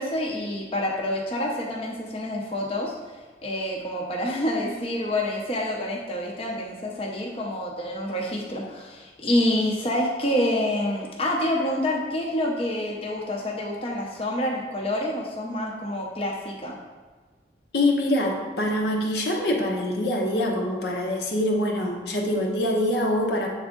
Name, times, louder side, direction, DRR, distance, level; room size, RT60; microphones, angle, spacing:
voice 1, 0.0-2.9 3.4-16.7, left 1 dB, 35° left, -2 dB, 0.7 m, -27 dB
voice 2, 17.7-23.5, left 1 dB, 70° left, 0 dB, 0.9 m, -24 dB
7.3 x 3.6 x 3.7 m, 1.4 s
head